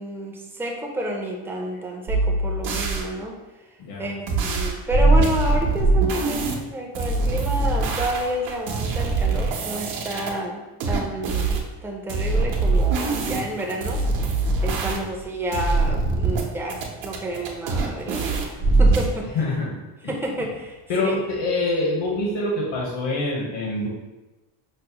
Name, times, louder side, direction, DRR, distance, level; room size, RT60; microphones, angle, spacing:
voice 1, 0.0-3.3 4.0-14.0 14.6-18.5 18.8-19.3 20.1-21.2, equal, 5° right, -1 dB, 0.4 m, -30 dB
sound 1, 2.1-3.0 4.3-6.5 6.9-10.3 10.8-11.6 12.1-15.2 15.5-16.4 16.7-19.1, right 3 dB, 70° right, 0.8 m, -22 dB
voice 2, 3.8-4.1 14.8-15.0 19.3-19.8 20.9-23.9, left 2 dB, 70° left, -2 dB, 1.0 m, -25 dB
5.4 x 2.0 x 2.8 m, 1.1 s
cardioid pair, 120°, 45 cm